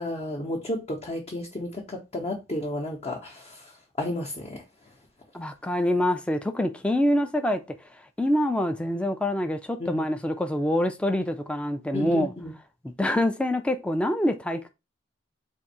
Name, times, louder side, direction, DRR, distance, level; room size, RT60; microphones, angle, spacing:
voice 1, 0.0-3.7 4.0-4.6 9.8-10.1 11.9-12.5, left 1 dB, 35° left, 0.7 m, -32 dB
voice 2, 5.3-7.6 8.2-12.3 12.8-14.7, left 1 dB, 5° left, 0.3 m, -25 dB
3.6 x 2.6 x 4.2 m
head